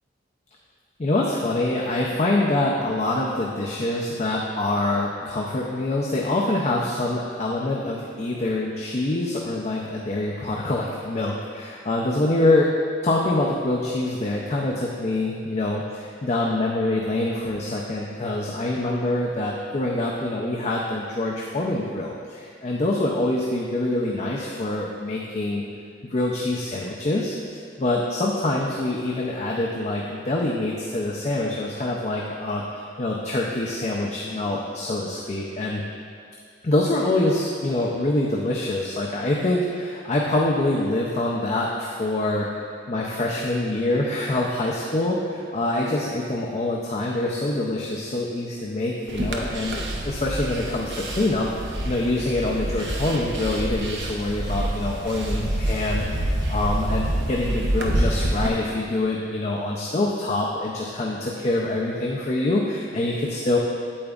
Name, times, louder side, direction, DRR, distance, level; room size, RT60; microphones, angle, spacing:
voice 1, 1.0-12.7 13.0-25.6 26.1-27.4 27.8-35.8 36.6-63.6, left 2 dB, 35° left, -2 dB, 0.5 m, -25 dB
sound 1, 49.1-58.5, right 1 dB, 60° right, 0.7 m, -27 dB
8.5 x 7.9 x 2.4 m, 2.2 s
head